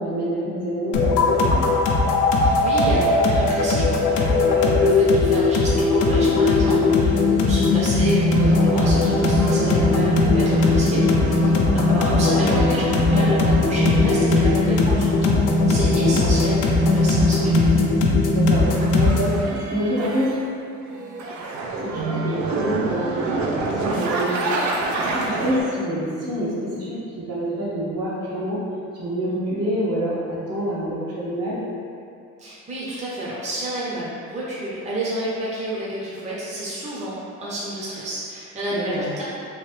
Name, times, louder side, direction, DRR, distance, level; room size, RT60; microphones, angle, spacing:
voice 1, 0.0-1.7 11.3-11.7 15.9-16.2 18.3-20.4 21.8-24.5 24.9-28.6 28.9-31.6 38.7-39.1, equal, 55° right, -8 dB, 1.1 m, -27 dB
sound 1, 0.9-19.4, left 3 dB, 85° left, 0.5 m, -18 dB
voice 2, 2.4-17.8 32.4-39.2, right 1 dB, 25° right, -8 dB, 0.7 m, -29 dB
sound 2, 8.3-15.0 16.0-18.0 18.5-20.5 20.8-25.6, right 3 dB, 75° right, 0.5 m, -30 dB
3.1 x 2.7 x 3.3 m, 2.6 s
cardioid pair, 90°, 30 cm